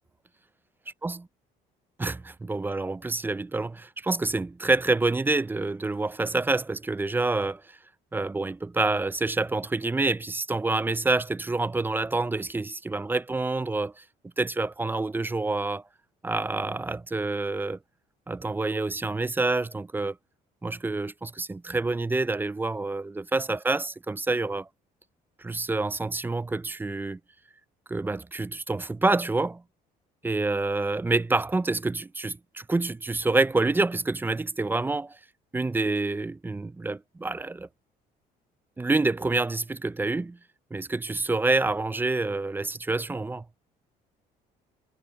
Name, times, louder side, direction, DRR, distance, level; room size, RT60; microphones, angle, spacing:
voice 1, 2.0-7.8 8.1-14.0 14.4-15.8 16.2-17.8 18.3-20.2 20.6-24.7 25.4-27.2 27.9-29.6 30.2-35.2 35.5-37.7 38.8-40.4 40.7-43.4, right 3 dB, 10° right, 0.4 m, -27 dB
cardioid pair, 110°, 17 cm